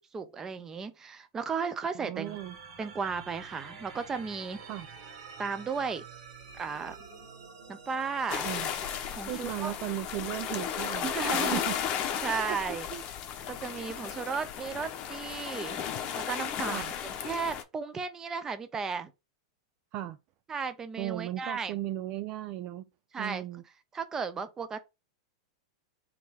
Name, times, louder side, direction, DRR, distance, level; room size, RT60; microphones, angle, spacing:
voice 1, 0.1-2.4 2.8-4.6 5.4-6.0 6.6-7.0 7.7-8.5 9.1-9.7 11.0-11.6 12.2-12.9 13.5-15.8 16.1-16.9 17.2-19.1 20.5-21.7 23.1-23.4 23.9-24.8, right 5 dB, 20° right, 0.7 m, -34 dB
voice 2, 1.9-2.6 4.7-4.9 8.4-8.7 9.3-11.7 12.5-12.6 12.9-13.0 16.7-16.9 19.9-20.2 21.0-22.8 23.2-23.6, right 14 dB, 45° right, 0.3 m, -36 dB
sound 1, 2.2-9.2, right 5 dB, 65° right, 1.9 m, -48 dB
sound 2, 8.3-17.6, left 8 dB, 40° left, 0.8 m, -34 dB
3.7 x 3.1 x 4.5 m
hypercardioid pair, 115°, 3 cm